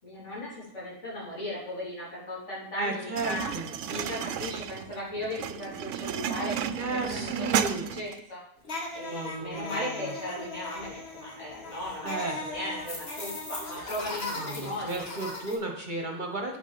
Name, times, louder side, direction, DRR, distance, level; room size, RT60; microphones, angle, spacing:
voice 1, 0.0-3.5 3.9-7.6 7.9-8.4 8.9-12.1 12.4-14.3 14.5-15.1, left 1 dB, 70° left, -7 dB, 4.3 m, -37 dB
voice 2, 2.8-3.8 6.8-7.9 9.1-10.1 12.0-12.5 14.4-16.6, right 2 dB, 40° right, 2 dB, 1.4 m, -34 dB
sound 1, 3.2-8.2, right 9 dB, 80° right, 0.9 m, -32 dB
sound 2, 8.6-15.5, left 2 dB, 55° left, 1.9 m, -38 dB
8.6 x 6.1 x 5.9 m, 0.74 s
omnidirectional pair, 1.3 m